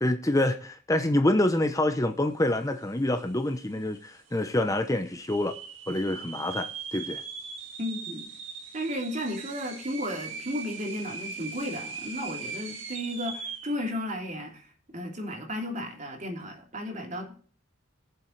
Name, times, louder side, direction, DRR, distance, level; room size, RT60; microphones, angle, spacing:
voice 1, 0.0-5.6 5.9-7.2, left 1 dB, 15° left, 0.8 m, -26 dB
sound 1, 2.9-3.0 3.2-3.8 4.3-4.4 5.1-13.8, right 5 dB, 70° right, 1.8 m, -40 dB
voice 2, 7.8-8.3 8.7-14.7 14.9-17.3, equal, 40° right, 3.0 m, -34 dB
19.5 x 7.4 x 3.2 m
head